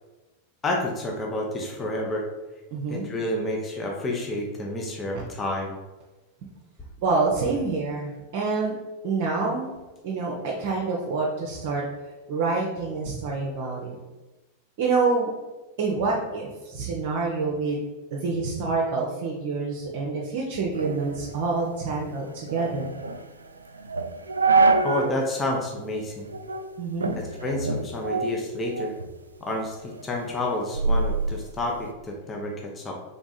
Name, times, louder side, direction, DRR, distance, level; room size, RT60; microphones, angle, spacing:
voice 1, 0.6-2.3 2.9-5.7 24.8-26.3 27.2-29.0 29.4-32.9, left 1 dB, 20° left, -1 dB, 0.8 m, -29 dB
voice 2, 2.7-3.0 7.0-8.8 9.0-9.7 10.0-11.8 12.3-14.0 14.8-15.3 15.8-17.8 18.1-22.9 26.8-27.2, right 4 dB, 50° right, -2 dB, 0.7 m, -27 dB
sound 1, 20.7-25.2 25.6-25.7 26.3-26.7 27.0-29.1 29.5-31.9, right 3 dB, 75° right, 0.3 m, -26 dB
3.5 x 3.5 x 4.1 m, 1.1 s
figure-of-eight pair, 90°, 0 cm